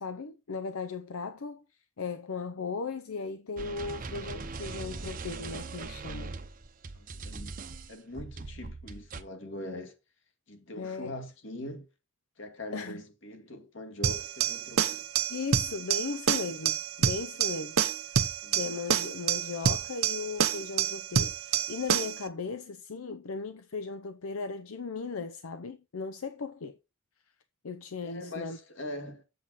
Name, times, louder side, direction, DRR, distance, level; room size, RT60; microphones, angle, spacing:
voice 1, 0.0-1.6 2.0-6.3 10.8-11.1 12.7-13.0 15.3-17.8 18.1-26.8 27.6-28.6, left 4 dB, 80° left, 0.6 m, -37 dB
sound 1, 3.6-9.2, right 3 dB, 40° right, 0.8 m, -40 dB
voice 2, 7.0-7.6 7.9-9.9 10.5-11.9 12.4-15.0 18.4-18.8 28.0-29.2, left 1 dB, 60° left, 2.1 m, -42 dB
sound 2, 14.0-22.2, right 7 dB, 80° right, 0.9 m, -28 dB
7.8 x 7.5 x 4.0 m
head